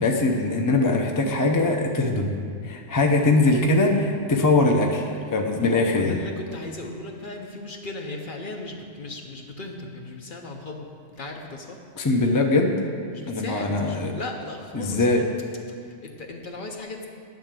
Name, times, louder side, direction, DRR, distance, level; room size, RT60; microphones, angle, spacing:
voice 1, 0.0-6.2 12.0-12.7 13.3-14.1 14.7-15.2, left 2 dB, 25° left, 2 dB, 0.4 m, -22 dB
voice 2, 5.5-11.8 13.1-15.3 15.8-17.1, left 2 dB, 50° left, 2 dB, 0.8 m, -36 dB
10.5 x 3.9 x 7.4 m, 2.2 s
omnidirectional pair, 1.3 m